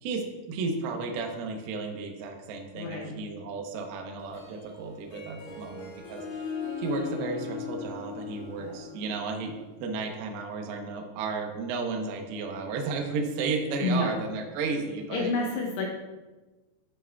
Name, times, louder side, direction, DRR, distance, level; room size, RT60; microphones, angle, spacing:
voice 1, 0.0-6.2 6.8-15.3, right 4 dB, 80° right, 3 dB, 2.3 m, -33 dB
voice 2, 2.7-3.2 8.6-8.7 13.8-14.2 15.1-15.9, left 2 dB, 75° left, -2 dB, 2.7 m, -29 dB
Harp, 4.2-9.7, left 6 dB, 60° left, 3.8 m, -39 dB
12.0 x 6.1 x 2.3 m, 1.2 s
omnidirectional pair, 5.6 m